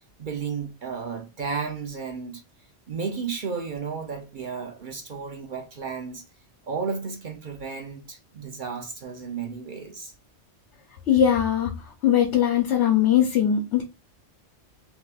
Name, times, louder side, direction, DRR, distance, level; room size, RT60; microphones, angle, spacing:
voice 1, 0.2-2.4 2.9-6.2 6.7-10.1, right 5 dB, 55° right, 0.6 m, -33 dB
voice 2, 11.1-13.8, left 9 dB, 80° left, 0.9 m, -21 dB
2.9 x 2.4 x 3.2 m
omnidirectional pair, 1.2 m